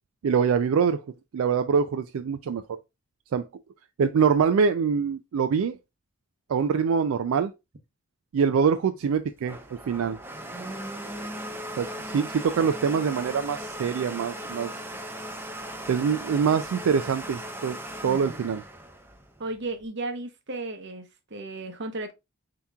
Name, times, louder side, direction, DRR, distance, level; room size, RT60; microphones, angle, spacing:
voice 1, 0.2-1.0 1.3-2.8 3.3-3.5 4.0-5.8 6.5-7.5 8.3-9.6 9.8-10.2 11.8-11.9 12.1-14.7 15.9-17.8 18.0-18.6, right 6 dB, 80° right, 0.3 m, -24 dB
Domestic sounds home sounds, 9.1-19.8, right 1 dB, 10° right, 0.5 m, -38 dB
voice 2, 19.4-22.1, right 2 dB, 50° right, 0.8 m, -34 dB
7.2 x 2.9 x 2.3 m
head